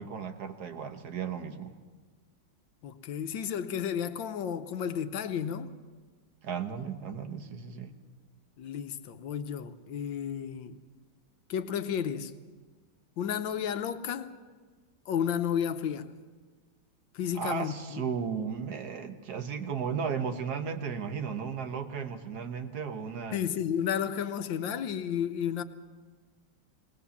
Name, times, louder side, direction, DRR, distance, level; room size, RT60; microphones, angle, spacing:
voice 1, 0.0-1.7 6.4-7.9 17.3-23.4, right 6 dB, 55° right, 1.6 m, -35 dB
voice 2, 2.8-5.7 8.6-10.8 11.5-12.3 13.2-14.3 15.1-16.1 17.1-18.0 23.3-25.6, left 8 dB, 75° left, 1.5 m, -32 dB
20.0 x 19.5 x 7.1 m
omnidirectional pair, 2.1 m